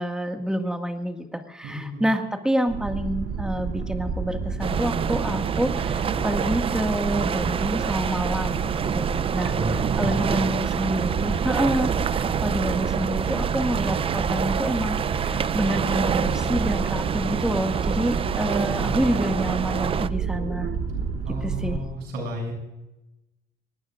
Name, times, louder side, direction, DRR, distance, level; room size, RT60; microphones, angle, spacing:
voice 1, 0.0-8.7 8.9-9.5 10.0-20.7 21.4-21.8, right 1 dB, 5° right, 5 dB, 1.9 m, -27 dB
voice 2, 1.6-2.1 9.4-10.5 18.5-19.0 21.2-22.5, equal, 85° right, 2 dB, 7.1 m, -32 dB
sound 1, 2.7-21.8, right 5 dB, 70° right, 3.2 m, -30 dB
sound 2, 4.6-20.1, right 7 dB, 35° right, 0.5 m, -27 dB
25.5 x 19.5 x 2.5 m, 0.96 s
cardioid pair, 110°, 17 cm